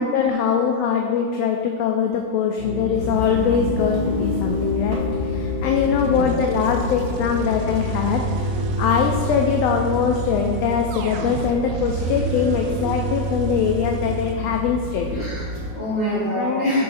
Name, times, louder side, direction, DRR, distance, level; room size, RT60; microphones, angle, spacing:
voice 1, 0.0-15.2 16.3-16.6, left 7 dB, 85° left, 3 dB, 1.4 m, -22 dB
Piano, 2.6-10.1, left 4 dB, 40° left, 1.3 m, -29 dB
sound 1, 2.9-15.7, equal, 65° right, 0.9 m, -31 dB
sound 2, 5.8-14.3, right 3 dB, 80° right, 1.9 m, -30 dB
voice 2, 15.1-16.8, equal, 40° right, -10 dB, 1.1 m, -25 dB
6.5 x 5.6 x 4.1 m, 2.2 s
omnidirectional pair, 3.4 m